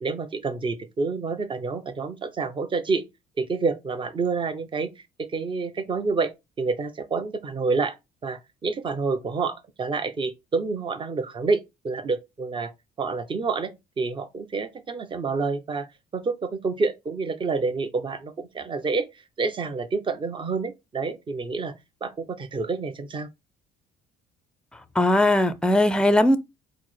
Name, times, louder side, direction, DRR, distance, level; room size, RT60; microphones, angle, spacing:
voice 1, 0.0-3.0 3.4-4.9 5.2-6.3 6.6-8.0 8.2-12.7 13.0-13.7 14.0-19.1 19.4-21.7 22.0-23.3, right 4 dB, 30° right, 0.7 m, -28 dB
voice 2, 25.0-26.4, left 1 dB, 5° left, 0.5 m, -19 dB
4.5 x 2.0 x 4.4 m
cardioid pair, 110°, 17 cm